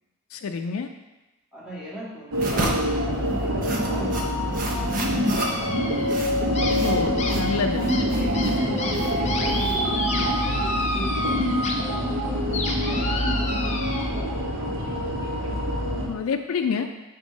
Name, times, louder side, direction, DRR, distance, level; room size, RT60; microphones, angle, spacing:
voice 1, 0.3-0.9 6.8-7.8 15.9-16.9, left 5 dB, 80° left, 5 dB, 0.4 m, -27 dB
voice 2, 1.5-4.5 4.9-6.0 8.0-11.7 11.9-14.9, right 1 dB, 5° right, -8 dB, 1.8 m, -40 dB
sound 1, 2.3-10.3, right 2 dB, 40° right, 0.8 m, -33 dB
sound 2, 2.3-16.1, equal, 75° right, 1.2 m, -25 dB
sound 3, 5.3-6.2 6.5-11.7 12.1-14.1, left 3 dB, 30° left, 0.7 m, -32 dB
5.2 x 4.3 x 5.1 m, 1.1 s
head